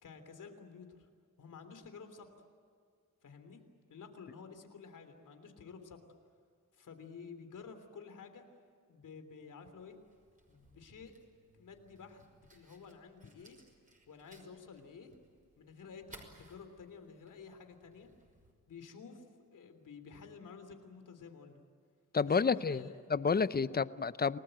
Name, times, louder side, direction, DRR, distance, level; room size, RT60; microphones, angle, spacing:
voice 1, 0.0-1.1 1.4-2.4 3.2-3.6 3.9-6.0 6.7-8.4 8.9-10.0 10.5-11.1 11.5-12.2 12.5-13.6 14.1-15.2 15.6-18.1 18.7-19.2 19.5-21.6 22.4-23.0 23.7-23.8, left 5 dB, 80° left, 7 dB, 3.4 m, -51 dB
Fire, 9.7-18.5, right 1 dB, 25° right, 5.6 m, -62 dB
voice 2, 22.1-24.4, left 5 dB, 30° left, 16 dB, 0.7 m, -30 dB
29.0 x 19.0 x 9.0 m, 2.2 s
wide cardioid pair, 100°, 31 cm